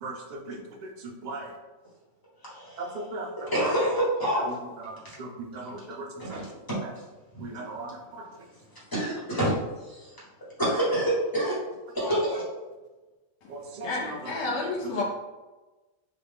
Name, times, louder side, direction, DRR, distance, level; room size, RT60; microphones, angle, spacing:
voice 1, 0.0-1.5 2.8-3.3 4.3-4.4 4.8-6.4 6.8-6.9 7.4-8.2 13.5-14.3 14.6-15.0, right 2 dB, 55° right, 1 dB, 0.5 m, -38 dB
voice 2, 2.4-2.8 3.4-4.4 6.2-6.4 6.7-6.8 8.9-9.6 9.9-10.1 10.6-11.6 11.9-12.4, right 1 dB, 15° left, -8 dB, 1.3 m, -26 dB
voice 3, 13.8-15.0, left 3 dB, 60° left, -3 dB, 1.1 m, -30 dB
3.9 x 2.4 x 3.4 m, 1.2 s
omnidirectional pair, 1.4 m